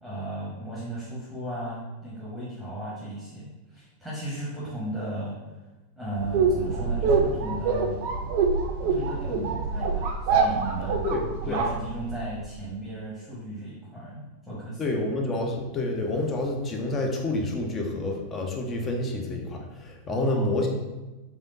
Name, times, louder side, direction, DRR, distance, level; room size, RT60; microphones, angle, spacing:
voice 1, 0.0-5.3 6.0-8.0 8.8-11.0 11.4-14.8 20.1-20.5, right 1 dB, ahead, -8 dB, 1.1 m, -35 dB
sound 1, 6.2-12.4, right 4 dB, 45° right, 0.5 m, -25 dB
voice 2, 11.0-11.6 14.8-20.7, left 2 dB, 25° left, 1 dB, 0.6 m, -28 dB
3.5 x 3.4 x 2.6 m, 1.1 s
figure-of-eight pair, 90°, 0 cm